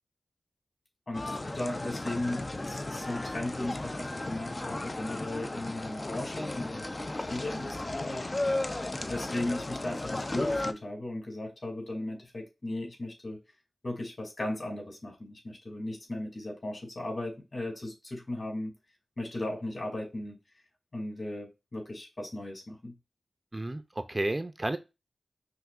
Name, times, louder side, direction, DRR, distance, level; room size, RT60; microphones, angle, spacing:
voice 1, 1.1-6.9 7.3-8.3 9.0-13.4 13.8-18.7 19.2-20.4 20.9-23.0, left 1 dB, 50° left, 2.6 m, -36 dB
sound 1, 1.1-10.7, left 2 dB, 35° left, 0.5 m, -35 dB
voice 2, 23.5-24.8, right 1 dB, 30° right, 0.5 m, -32 dB
5.8 x 2.7 x 2.5 m
cardioid pair, 50°, 0 cm